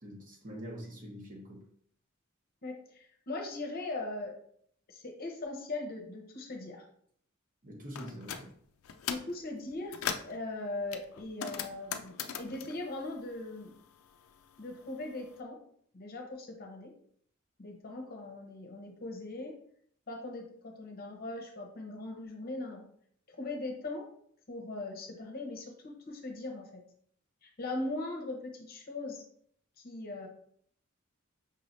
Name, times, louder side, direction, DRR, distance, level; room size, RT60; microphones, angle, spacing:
voice 1, 0.0-1.6 7.6-8.5, equal, 40° right, -1 dB, 1.0 m, -44 dB
voice 2, 2.6-4.3 4.9-6.9 9.1-13.8 14.6-15.6 15.9-16.9 17.6-19.5 20.1-22.8 23.3-24.1 24.5-26.8 27.4-29.2 29.8-30.3, left 2 dB, 45° left, 2 dB, 0.8 m, -40 dB
sound 1, 7.9-8.4 8.8-9.3 9.7-10.4 10.9-13.8 14.1-15.2, left 8 dB, 85° left, 0.4 m, -39 dB
5.4 x 3.2 x 2.6 m, 0.64 s
head